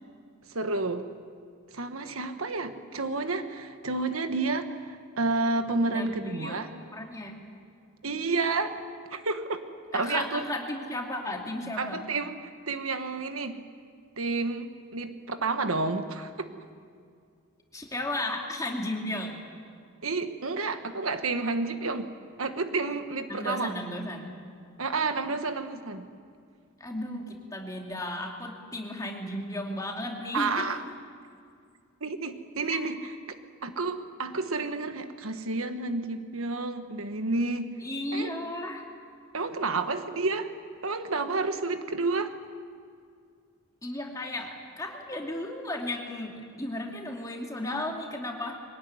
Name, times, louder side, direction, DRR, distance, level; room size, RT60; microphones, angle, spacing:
voice 1, 0.5-1.1 1.7-6.7 8.0-8.8 9.1-9.6 9.9-10.4 11.8-12.4 12.7-13.6 14.2-16.5 20.0-22.1 22.4-23.7 24.8-26.1 30.3-30.8 32.0-33.0 33.6-37.7 38.1-38.3 39.3-40.5 40.8-42.3, right 3 dB, 75° right, 8 dB, 1.4 m, -30 dB
voice 2, 5.9-6.6 6.9-7.4 9.9-12.0 17.7-19.4 23.3-24.4 26.8-30.6 32.7-32.8 37.8-38.8 43.8-48.6, left 1 dB, 15° left, 0 dB, 2.6 m, -34 dB
22.5 x 19.0 x 9.6 m, 2.3 s
head